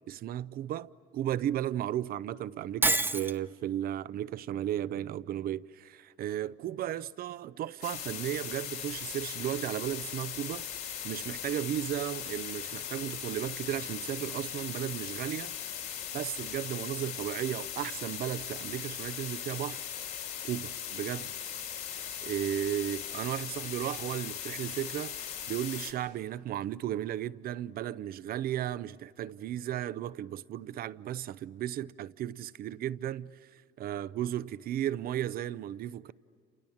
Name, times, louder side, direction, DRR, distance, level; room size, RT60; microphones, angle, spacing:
voice 1, 0.1-15.9 16.1-19.8 20.4-21.3 22.2-36.1, right 11 dB, 60° right, 0.6 m, -35 dB
Shatter, 2.8-3.4, right 2 dB, 10° right, 0.7 m, -26 dB
sound 1, 7.8-25.9, left 9 dB, 65° left, 3.9 m, -39 dB
28.5 x 28.5 x 7.2 m
cardioid pair, 110°, 17 cm